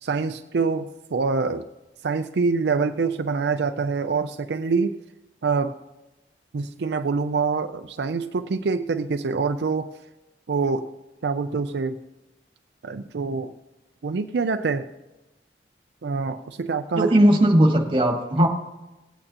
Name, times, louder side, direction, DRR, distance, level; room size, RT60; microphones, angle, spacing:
voice 1, 0.0-1.6 2.0-5.0 5.4-5.7 6.5-9.9 10.5-10.9 11.2-12.0 12.8-13.5 14.0-14.9 16.0-17.1 18.4-18.5, right 4 dB, 75° right, 7 dB, 0.4 m, -25 dB
voice 2, 16.9-18.5, right 1 dB, 30° right, 1 dB, 1.6 m, -18 dB
18.0 x 8.8 x 2.9 m, 1.0 s
head